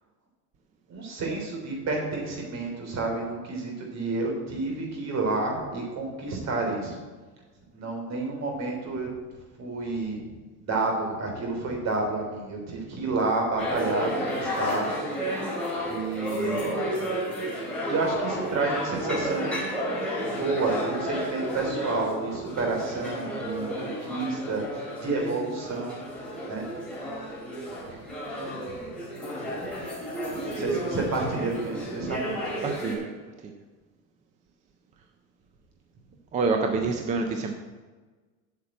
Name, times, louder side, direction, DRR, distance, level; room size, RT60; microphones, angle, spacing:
voice 1, 0.9-7.0 7.7-9.1 9.6-10.2 10.6-15.1 15.9-16.7 17.9-19.6 20.2-26.0 26.4-26.6 30.5-32.5, right 3 dB, 35° right, 1 dB, 3.4 m, -30 dB
sound 1, 13.6-32.9, equal, ahead, 4.0 m, -32 dB
voice 2, 30.3-30.7 32.6-33.1 33.4-33.5 36.3-37.5, right 4 dB, 20° right, 5 dB, 0.3 m, -28 dB
8.7 x 6.6 x 8.6 m, 1.3 s
cardioid pair, 155°, 47 cm